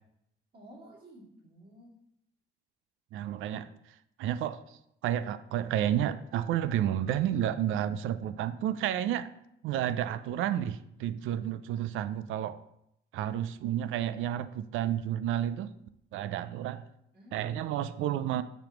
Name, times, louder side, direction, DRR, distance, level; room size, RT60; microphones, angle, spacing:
voice 1, 0.5-2.0 17.1-17.8, right 1 dB, 50° right, -5 dB, 2.5 m, -53 dB
voice 2, 3.1-3.7 4.2-4.6 5.0-9.3 9.6-12.6 13.1-15.7 16.1-16.8 17.3-18.4, right 11 dB, 85° right, 14 dB, 0.4 m, -31 dB
6.9 x 3.1 x 5.8 m, 0.79 s
cardioid pair, 90°, 20 cm